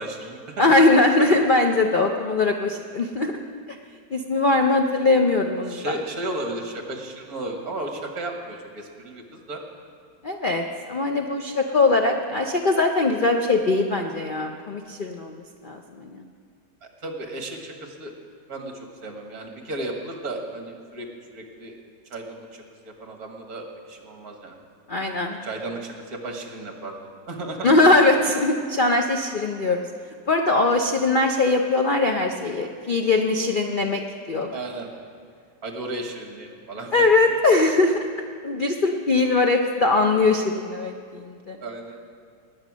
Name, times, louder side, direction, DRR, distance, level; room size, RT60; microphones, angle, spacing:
voice 1, 0.0-0.6 5.7-9.6 16.8-18.1 18.5-21.1 21.3-21.8 22.1-24.6 25.4-27.7 34.5-34.9 35.6-37.1 41.6-42.0, right 2 dB, 55° right, 3 dB, 2.0 m, -34 dB
voice 2, 0.6-3.3 4.1-5.8 10.2-16.2 24.9-25.4 27.6-29.8 30.3-34.0 34.3-34.6 36.9-38.1 38.4-41.6, left 3 dB, 85° left, 3 dB, 0.4 m, -21 dB
20.0 x 8.8 x 6.2 m, 2.1 s
omnidirectional pair, 2.0 m